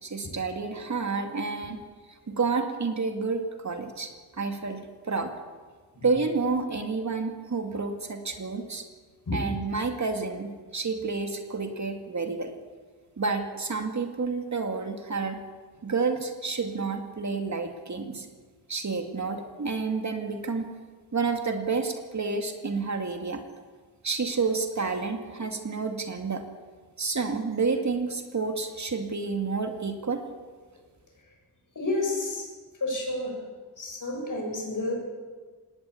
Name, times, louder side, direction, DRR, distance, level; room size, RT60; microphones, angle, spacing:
voice 1, 0.0-1.8 2.3-4.1 4.4-5.3 6.0-8.8 9.3-12.5 13.2-15.4 15.8-18.3 18.7-20.7 21.1-23.4 24.0-26.4 27.0-30.2, right 4 dB, 45° right, 5 dB, 2.5 m, -29 dB
voice 2, 31.7-32.5 32.8-33.4 33.8-34.9, left 2 dB, 50° left, 1 dB, 7.8 m, -30 dB
19.5 x 18.0 x 8.6 m, 1.5 s
wide cardioid pair, 85°, 40 cm